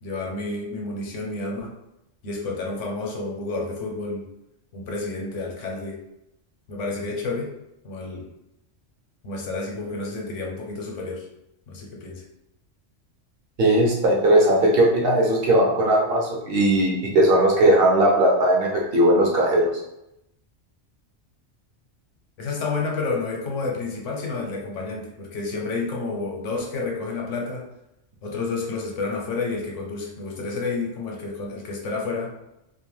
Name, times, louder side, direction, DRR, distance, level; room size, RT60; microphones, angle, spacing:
voice 1, 0.0-1.8 2.2-4.3 4.7-6.0 6.7-7.5 7.8-8.3 9.2-11.3 11.7-12.2 22.4-27.7 28.2-32.4, left 3 dB, 85° left, 0 dB, 1.0 m, -30 dB
voice 2, 13.6-19.7, right 1 dB, 60° right, -3 dB, 0.8 m, -18 dB
2.5 x 2.1 x 3.1 m, 0.84 s
omnidirectional pair, 1.2 m